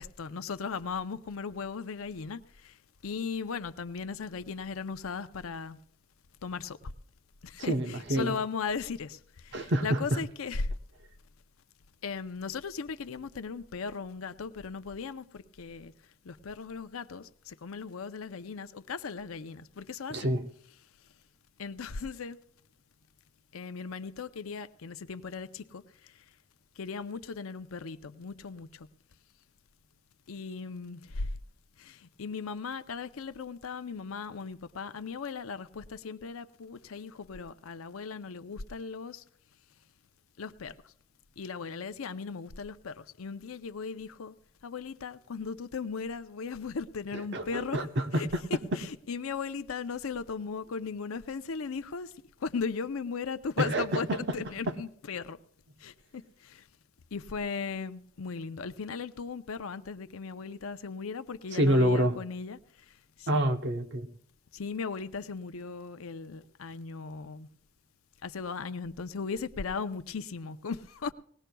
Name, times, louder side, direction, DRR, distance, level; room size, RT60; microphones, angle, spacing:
voice 1, 0.0-2.4 3.0-5.8 6.4-6.8 7.6-7.7 8.1-9.2 9.8-10.6 12.0-15.9 16.3-17.2 17.6-20.1 21.6-22.4 23.5-25.8 26.8-28.7 30.3-31.0 32.2-39.2 40.4-40.7 41.4-44.3 44.6-47.8 49.1-52.1 52.4-54.1 54.3-55.4 55.8-56.2 57.1-62.6 64.5-67.5 68.2-70.8 71.0-71.1, left 5 dB, 85° left, 0.6 m, -37 dB
voice 2, 7.6-8.4 9.5-10.2 20.1-20.5 47.1-48.8 53.6-54.8 61.5-62.2 63.3-64.1, right 1 dB, 55° right, 0.9 m, -28 dB
19.5 x 18.0 x 2.3 m
head